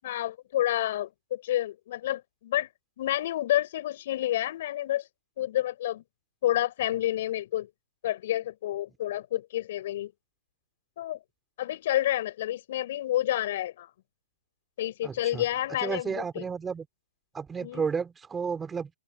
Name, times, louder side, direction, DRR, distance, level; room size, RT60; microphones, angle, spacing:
voice 1, 0.0-2.7 3.0-5.0 5.4-6.0 6.4-7.7 8.0-10.1 11.0-11.2 11.6-13.9 14.8-16.4 17.6-17.9, left 13 dB, 50° left, 6.6 m, -29 dB
voice 2, 15.0-15.4 15.8-16.9 17.3-18.9, right 6 dB, 10° right, 4.6 m, -32 dB
open air
hypercardioid pair, 145°, 0 cm